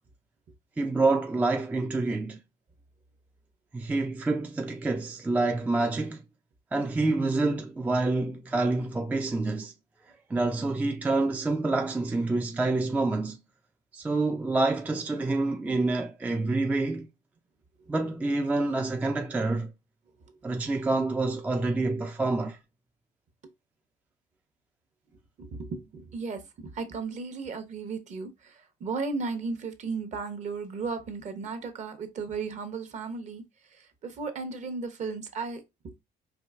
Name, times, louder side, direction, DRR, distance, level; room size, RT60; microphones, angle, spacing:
voice 1, 0.8-2.4 3.7-6.2 6.7-9.7 10.3-13.4 13.9-17.1 17.9-19.7 20.4-22.6, right 2 dB, 10° right, 0.3 m, -27 dB
voice 2, 25.4-33.4 33.7-35.9, right 4 dB, 45° right, 0.8 m, -35 dB
4.5 x 2.6 x 2.4 m
cardioid pair, 110°, 17 cm